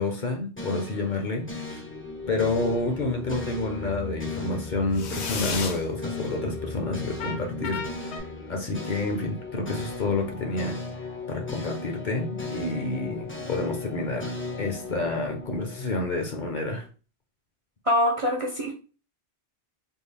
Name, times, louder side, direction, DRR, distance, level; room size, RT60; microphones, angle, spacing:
voice 1, 0.0-1.8 2.3-7.9 8.5-10.8 11.3-16.9, left 3 dB, 50° left, 3 dB, 0.7 m, -29 dB
sound 1, 0.6-16.8, left 3 dB, 20° left, 0.4 m, -37 dB
sound 2, 2.6-3.2 4.9-5.8 7.2-8.2, left 5 dB, 85° left, 1.0 m, -34 dB
voice 2, 17.9-18.7, left 1 dB, 40° right, 0 dB, 0.6 m, -24 dB
3.6 x 2.3 x 3.3 m, 0.36 s
omnidirectional pair, 1.1 m